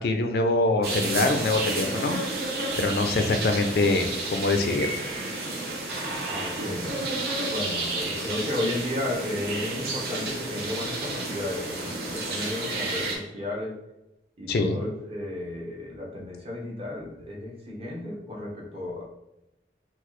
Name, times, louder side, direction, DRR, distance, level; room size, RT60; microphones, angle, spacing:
voice 1, 0.0-2.2 2.8-4.9 14.5-14.8, left 2 dB, 60° left, 6 dB, 0.4 m, -24 dB
sound 1, 0.8-13.2, right 2 dB, 60° right, 0.8 m, -31 dB
voice 2, 6.3-6.9 7.5-13.7 14.4-19.0, left 1 dB, 30° right, -3 dB, 0.8 m, -33 dB
3.9 x 2.4 x 3.1 m, 0.90 s
head